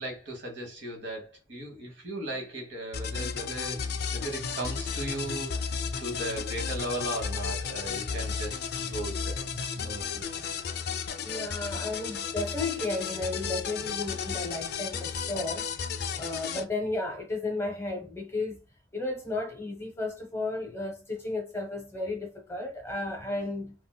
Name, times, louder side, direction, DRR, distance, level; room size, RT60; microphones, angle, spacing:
voice 1, 0.0-3.8 4.1-5.7 6.0-9.4 9.7-10.4, right 1 dB, 65° right, 1.2 m, -37 dB
sound 1, 2.9-16.6, left 6 dB, 50° left, 0.4 m, -33 dB
voice 2, 11.2-15.7 16.2-18.6 18.9-23.7, left 2 dB, 15° left, 0.6 m, -33 dB
3.7 x 2.2 x 2.2 m
head